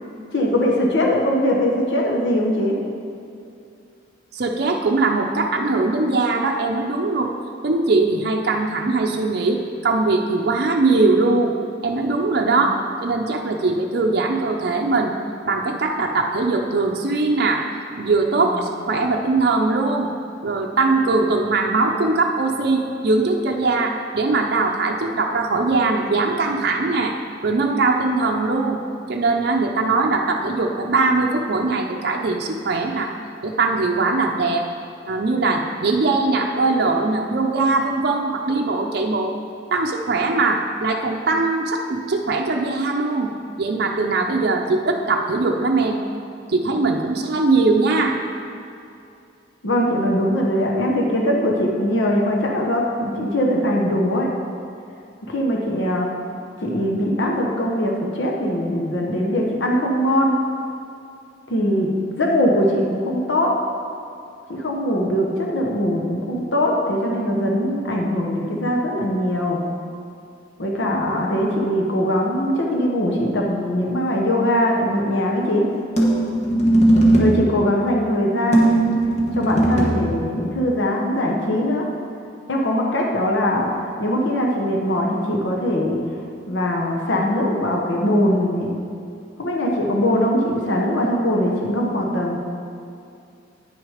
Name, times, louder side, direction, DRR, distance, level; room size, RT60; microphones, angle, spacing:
voice 1, 0.3-2.8 12.4-12.6 18.4-18.6 49.6-54.3 55.3-56.1 56.6-60.4 61.5-61.9 62.1-63.5 64.5-69.6 70.6-75.6 77.2-78.9 79.3-81.9 82.5-86.0 86.5-88.7 89.4-92.4, equal, 80° left, -1 dB, 1.0 m, -21 dB
voice 2, 4.3-7.3 7.6-11.5 11.8-12.7 13.0-15.2 15.4-17.6 18.0-20.1 20.4-27.2 27.4-28.8 29.1-33.1 33.4-34.6 35.1-39.3 39.7-43.3 43.6-46.0 46.5-48.2, right 3 dB, 60° right, 1 dB, 0.6 m, -21 dB
sound 1, 76.0-77.5 78.5-80.0, right 1 dB, 40° left, 1.4 m, -17 dB
9.2 x 6.3 x 5.0 m, 2.5 s
head